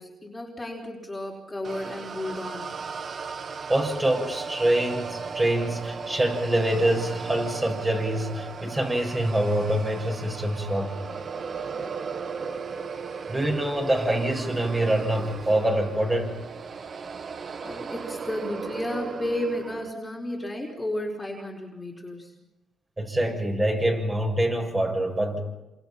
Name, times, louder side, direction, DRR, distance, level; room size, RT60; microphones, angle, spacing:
voice 1, 0.0-2.7 11.7-12.1 17.6-22.3, left 1 dB, 15° left, -1 dB, 4.7 m, -33 dB
sound 1, 1.6-19.9, right 5 dB, 45° right, 1.2 m, -36 dB
voice 2, 3.7-11.2 13.3-16.3 23.0-25.4, right 1 dB, 20° right, 1 dB, 7.1 m, -25 dB
28.0 x 27.0 x 5.9 m, 1.0 s
cardioid pair, 90°, 0 cm